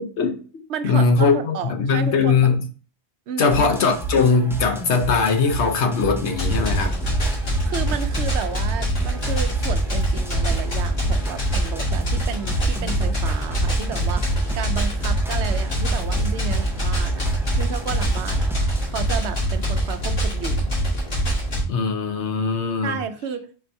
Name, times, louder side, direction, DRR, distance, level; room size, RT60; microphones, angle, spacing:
voice 1, 0.0-2.6 3.4-6.9 21.7-23.0, left 4 dB, 90° left, 1.1 m, -20 dB
voice 2, 0.7-2.5 3.3-3.6 7.6-17.3 17.6-20.7 22.8-23.5, right 7 dB, 85° right, 0.9 m, -32 dB
sound 1, 3.5-8.5 9.0-18.8, right 3 dB, 5° right, 0.4 m, -31 dB
sound 2, 6.3-21.6, equal, 60° left, 1.9 m, -24 dB
4.5 x 2.7 x 4.4 m
omnidirectional pair, 1.1 m